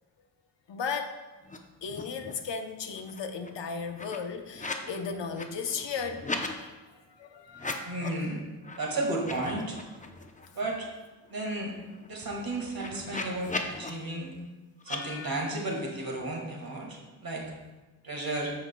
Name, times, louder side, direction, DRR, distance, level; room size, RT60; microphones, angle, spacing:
voice 1, 0.7-1.2 1.8-6.7 7.1-8.0 14.9-15.3, left 5 dB, 80° left, 5 dB, 0.8 m, -36 dB
sound 1, 1.4-1.6 1.8-2.5 2.8-4.9 5.2-6.5 7.5-8.2 8.6-8.8 9.1-10.5 10.9-11.0 11.2-13.9 14.8-15.0, left 2 dB, 20° left, 0.6 m, -38 dB
voice 2, 7.8-8.4 8.8-9.8 10.5-10.9 11.3-11.7 12.1-14.3 14.8-17.5 18.0-18.5, right 2 dB, 55° right, -1 dB, 1.7 m, -33 dB
14.0 x 5.1 x 2.2 m, 1.2 s
wide cardioid pair, 100°, 43 cm